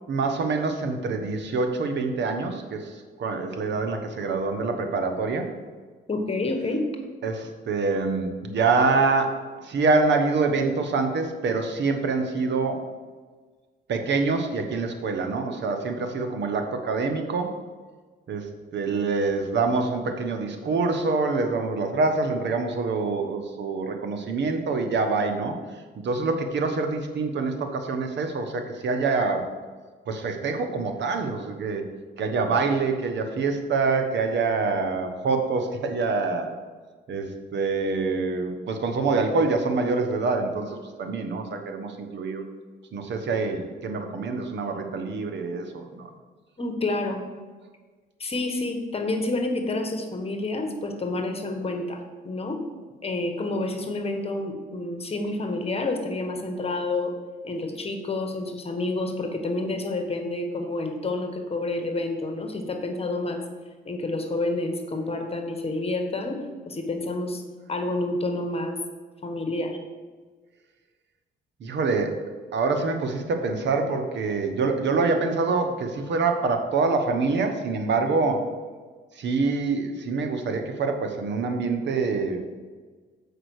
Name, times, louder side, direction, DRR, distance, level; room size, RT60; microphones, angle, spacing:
voice 1, 0.1-5.5 7.2-12.8 13.9-17.5 18.3-25.6 26.0-29.5 30.1-31.9 32.2-36.5 37.1-42.4 42.9-46.1 71.6-72.2 72.5-78.5 79.1-82.4, right 4 dB, 65° right, 6 dB, 1.1 m, -26 dB
voice 2, 6.1-6.8 46.6-47.2 48.2-52.6 53.0-57.1 57.4-63.4 63.8-66.4 66.7-67.4 67.7-68.8 69.2-69.8, left 2 dB, 30° left, 5 dB, 1.4 m, -29 dB
7.5 x 5.0 x 6.4 m, 1.4 s
cardioid pair, 90°, 20 cm